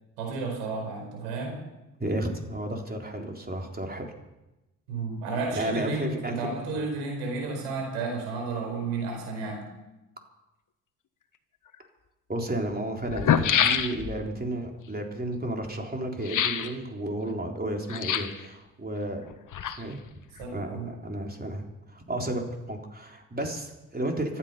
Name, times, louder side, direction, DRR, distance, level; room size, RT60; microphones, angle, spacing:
voice 1, 0.2-1.6 4.9-9.7 20.4-20.9, right 3 dB, 85° right, 1 dB, 4.9 m, -32 dB
voice 2, 2.0-4.1 5.5-6.5 12.3-19.2 19.8-20.0 20.5-24.4, right 1 dB, 25° right, 2 dB, 3.8 m, -32 dB
sound 1, 11.7-11.8 12.7-12.8 13.0-14.3 16.2-16.7 17.9-18.5 19.3-20.1 20.4-20.5, left 8 dB, 55° left, 1.4 m, -26 dB
25.0 x 8.9 x 5.7 m, 1.0 s
hypercardioid pair, 45°, 38 cm